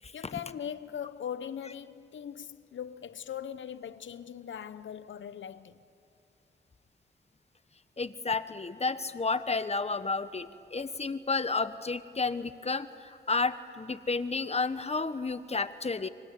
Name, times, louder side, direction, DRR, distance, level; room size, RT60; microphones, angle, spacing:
voice 1, 0.1-5.8, left 9 dB, 85° left, 0.8 m, -40 dB
voice 2, 8.0-16.1, left 4 dB, 35° left, 1.2 m, -31 dB
28.0 x 25.0 x 8.4 m
cardioid pair, 70°, 19 cm